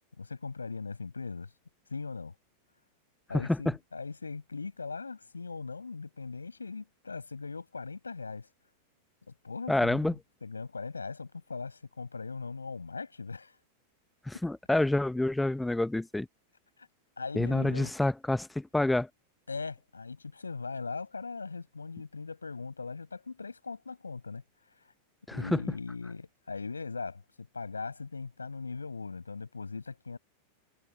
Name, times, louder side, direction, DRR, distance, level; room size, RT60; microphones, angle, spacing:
voice 1, 0.2-1.5 1.9-2.3 3.3-8.5 9.3-13.6 16.8-16.9 17.2-17.9 19.5-24.9 25.3-30.2, left 4 dB, 75° left, 7.4 m, -40 dB
voice 2, 9.7-10.1 14.3-16.3 17.3-19.1 25.3-25.6, left 2 dB, 5° left, 1.3 m, -28 dB
figure-of-eight pair, 90°, 0 cm